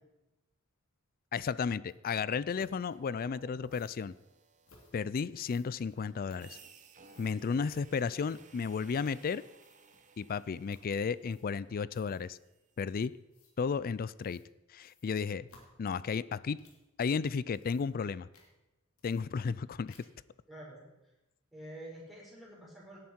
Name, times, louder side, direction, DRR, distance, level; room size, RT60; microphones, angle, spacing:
voice 1, 1.3-4.1 4.9-6.6 7.2-9.4 10.2-12.4 12.8-13.1 13.6-14.4 14.7-15.5 15.8-16.6 17.0-18.3 19.0-19.9, left 5 dB, 45° left, 19 dB, 0.4 m, -33 dB
sound 1, 1.9-2.0 2.6-2.8 3.6-4.0 4.6-4.9 5.4-6.8 7.1-7.3 7.7-7.8 8.2-8.7 9.0-9.3 9.5-10.0 10.7-10.9 11.2-11.6 11.9-12.4 13.3-13.5 14.2-14.5 14.8-16.9 17.4-18.1 18.3-18.5 19.0-19.6 19.9-20.3, left 3 dB, 70° left, 2.7 m, -62 dB
sound 2, 2.7-12.8, right 5 dB, 35° right, 1.0 m, -60 dB
voice 2, 20.5-20.8 21.5-23.0, right 1 dB, ahead, -5 dB, 4.7 m, -48 dB
17.0 x 9.3 x 4.4 m, 0.97 s
head